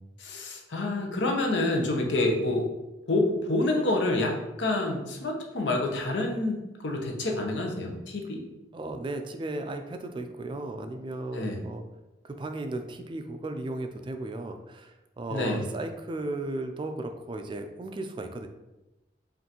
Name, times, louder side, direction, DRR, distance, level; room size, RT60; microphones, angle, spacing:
voice 1, 0.2-2.7 3.1-8.4 11.3-11.6 15.3-15.6, left 2 dB, 90° left, 1 dB, 0.7 m, -28 dB
voice 2, 8.7-11.8 12.2-18.5, right 2 dB, 25° right, 6 dB, 0.3 m, -35 dB
5.3 x 2.5 x 2.9 m, 1.0 s
head